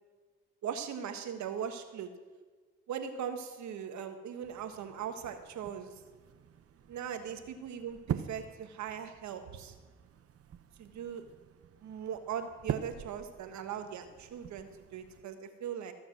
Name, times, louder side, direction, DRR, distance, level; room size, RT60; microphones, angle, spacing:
voice 1, 0.6-2.1 2.9-6.0 6.9-9.7 10.8-11.2 11.8-15.9, right 8 dB, 70° right, 7 dB, 1.5 m, -39 dB
sound 1, 4.4-15.2, right 9 dB, 50° right, 0.8 m, -44 dB
15.0 x 7.2 x 6.1 m, 1.4 s
supercardioid pair, 60°, 30 cm